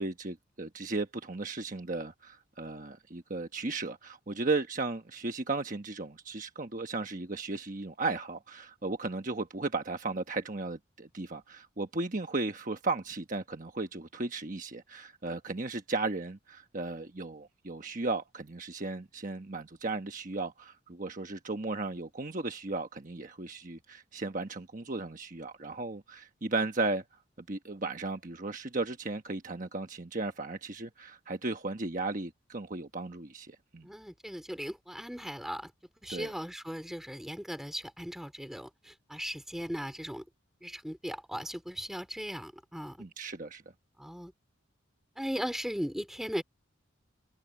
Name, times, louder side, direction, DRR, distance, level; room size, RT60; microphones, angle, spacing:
voice 1, 0.0-27.2 27.5-33.9 36.1-36.3 43.0-43.6, right 3 dB, 40° right, 1.2 m, -35 dB
voice 2, 33.8-35.7 36.0-40.2 40.6-43.0 44.0-44.3 45.2-46.4, equal, ahead, 3.2 m, -38 dB
head